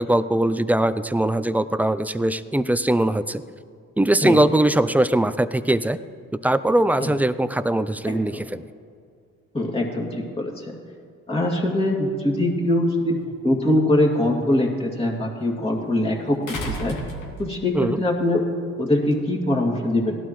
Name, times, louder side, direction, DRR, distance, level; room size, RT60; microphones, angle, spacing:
voice 1, 0.0-3.4 4.0-6.0 6.4-8.7 17.7-18.0, right 1 dB, 5° right, 13 dB, 0.3 m, -21 dB
voice 2, 9.5-10.8 11.3-16.4 16.7-17.0 17.4-18.4 18.8-20.2, left 1 dB, 20° left, -3 dB, 2.3 m, -22 dB
sound 1, 13.2-13.3 16.5-17.8 19.1-19.2, equal, 75° left, 2.1 m, -32 dB
18.0 x 12.0 x 3.1 m, 2.2 s
cardioid pair, 90°, 30 cm